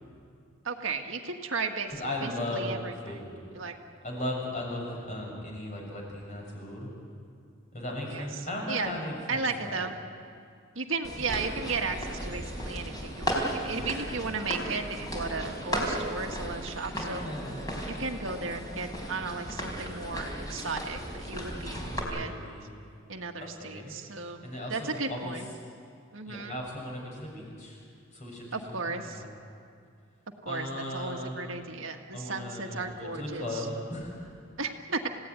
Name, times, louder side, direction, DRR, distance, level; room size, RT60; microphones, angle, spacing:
voice 1, 0.6-3.2 3.5-3.7 8.1-8.3 8.7-8.9 9.3-9.9 10.8-17.2 18.0-22.3 23.1-24.4 24.7-25.5 26.1-26.6 28.5-29.2 30.4-33.7 34.6-35.1, right 4 dB, 70° right, 3 dB, 1.7 m, -35 dB
voice 2, 1.9-2.8 3.0-3.3 4.0-6.9 7.7-9.8 11.1-11.5 13.6-14.1 16.9-17.6 21.9-22.7 23.4-25.3 26.3-27.8 28.1-29.3 30.5-31.5 32.1-34.3, left 1 dB, 35° left, -1 dB, 6.8 m, -37 dB
sound 1, 11.0-22.0, equal, 20° left, 4.3 m, -35 dB
29.0 x 17.0 x 9.5 m, 2.3 s
head